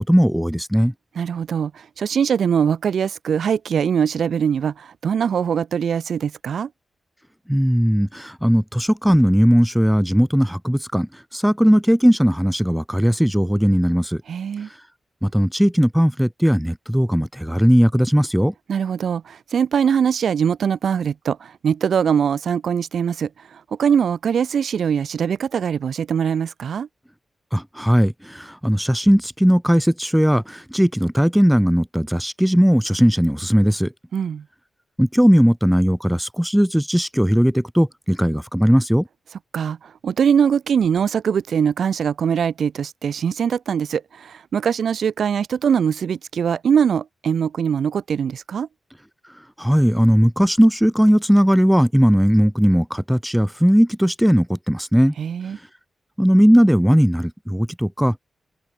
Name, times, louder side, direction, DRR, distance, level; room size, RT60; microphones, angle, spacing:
voice 1, 0.1-0.9 7.5-14.2 15.2-18.5 27.5-33.9 35.0-39.0 49.6-55.1 56.2-58.2, equal, ahead, 0.5 m, -17 dB
voice 2, 1.1-6.7 14.3-14.7 18.7-26.9 34.1-34.4 39.5-48.7 55.2-55.6, right 7 dB, 80° right, 1.1 m, -22 dB
wide cardioid pair, 115°, 0 cm